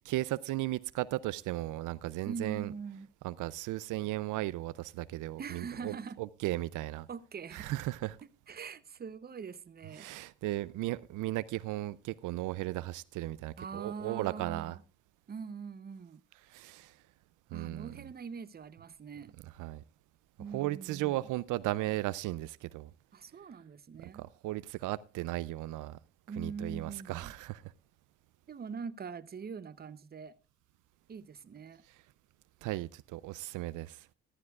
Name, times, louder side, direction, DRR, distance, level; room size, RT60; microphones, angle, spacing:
voice 1, 0.1-2.7 3.2-7.1 7.5-8.2 9.9-14.8 16.4-17.0 17.5-18.1 19.6-19.8 20.5-22.9 24.0-26.0 26.4-27.7 31.9-32.0 32.6-34.1, right 17 dB, 85° right, 0.5 m, -36 dB
voice 2, 2.3-3.1 5.4-6.2 7.1-7.7 8.5-10.1 13.6-14.8 15.3-16.2 17.5-19.3 20.4-21.2 23.1-24.2 26.3-27.3 28.5-30.4 31.1-31.8, right 5 dB, 30° right, 0.8 m, -43 dB
14.0 x 13.0 x 2.4 m
cardioid pair, 90°, 30 cm